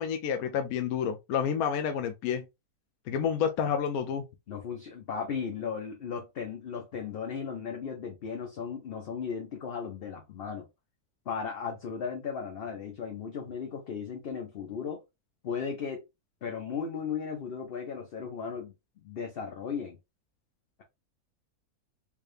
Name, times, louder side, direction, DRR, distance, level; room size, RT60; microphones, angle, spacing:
voice 1, 0.0-2.4 3.1-4.2, left 7 dB, 75° left, 1.0 m, -29 dB
voice 2, 4.5-10.7 11.3-15.0 15.4-16.0 16.4-20.0, left 6 dB, 50° left, 0.7 m, -36 dB
3.4 x 3.3 x 2.5 m
omnidirectional pair, 1.6 m